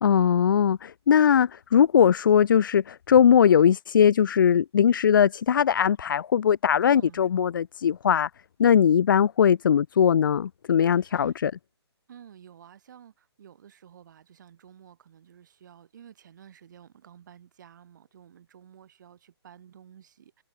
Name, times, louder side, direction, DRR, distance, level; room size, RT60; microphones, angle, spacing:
voice 1, 0.0-8.3 8.6-11.5, left 8 dB, 50° left, 0.4 m, -20 dB
voice 2, 6.8-7.3 10.9-11.5 12.1-20.4, right 9 dB, 45° right, 7.8 m, -51 dB
hypercardioid pair, 160°, 14 cm